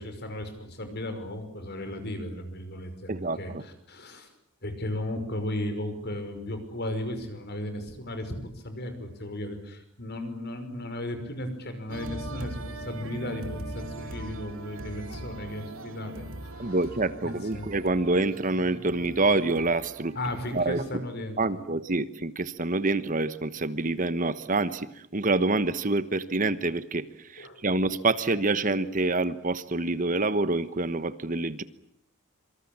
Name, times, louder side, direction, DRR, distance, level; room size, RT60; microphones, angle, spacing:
voice 1, 0.0-4.3 4.6-16.8 17.2-17.7 20.1-21.6 27.4-27.6, left 1 dB, 50° left, 8 dB, 5.7 m, -35 dB
voice 2, 3.1-3.6 16.6-20.2 20.5-21.0 21.4-31.6, right 2 dB, 40° right, 13 dB, 1.2 m, -27 dB
sound 1, 11.9-20.9, right 1 dB, 75° right, 2.8 m, -40 dB
26.5 x 25.5 x 8.8 m, 0.68 s
head